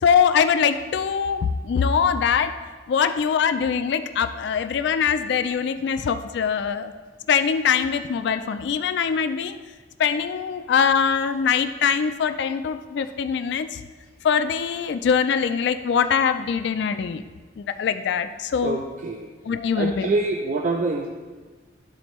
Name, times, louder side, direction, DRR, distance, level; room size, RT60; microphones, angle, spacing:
voice 1, 0.0-2.6 2.9-6.9 7.3-9.6 10.0-13.8 14.2-17.2 17.6-18.8 19.4-20.1, left 7 dB, 65° left, 10 dB, 0.3 m, -22 dB
voice 2, 18.6-19.3 19.8-21.1, right 3 dB, 40° right, 2 dB, 0.4 m, -25 dB
12.0 x 4.2 x 3.0 m, 1.4 s
head